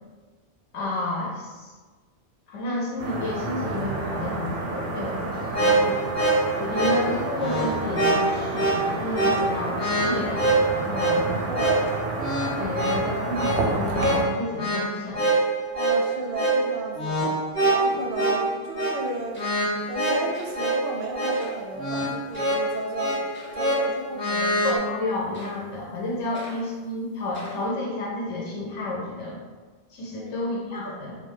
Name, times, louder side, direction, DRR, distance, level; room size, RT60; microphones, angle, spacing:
voice 1, 0.7-1.7 2.5-6.0 6.6-11.4 12.6-15.2 24.6-29.4 29.9-31.2, left 2 dB, 85° left, -4 dB, 0.9 m, -31 dB
sound 1, 3.0-14.2, right 2 dB, 80° right, 0.9 m, -30 dB
sound 2, 5.3-24.8, right 2 dB, 40° left, 0.9 m, -25 dB
voice 2, 11.4-11.9 15.7-17.4 17.7-19.6 19.9-23.2 23.5-24.7 26.3-26.4 30.2-31.0, right 2 dB, 60° right, -1 dB, 0.6 m, -34 dB
sound 3, 19.0-19.1 19.3-19.8 20.3-20.6 21.3-21.6 22.3-22.6 23.3-23.6 24.3-24.7 25.3-25.7 26.3-26.7 27.3-27.7, right 1 dB, 15° left, 0.5 m, -43 dB
2.3 x 2.3 x 3.2 m, 1.4 s
omnidirectional pair, 1.2 m